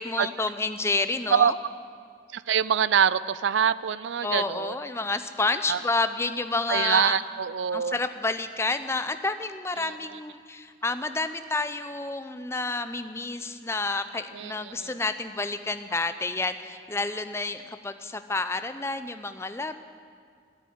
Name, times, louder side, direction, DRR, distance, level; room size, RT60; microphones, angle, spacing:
voice 1, 0.0-1.5 4.2-7.2 7.7-19.8, left 3 dB, 15° left, 10 dB, 0.5 m, -29 dB
voice 2, 2.3-4.8 5.7-5.8 6.7-7.9 9.8-9.9 14.3-15.0, right 8 dB, 90° right, 17 dB, 0.4 m, -25 dB
13.0 x 10.0 x 9.5 m, 2.1 s
head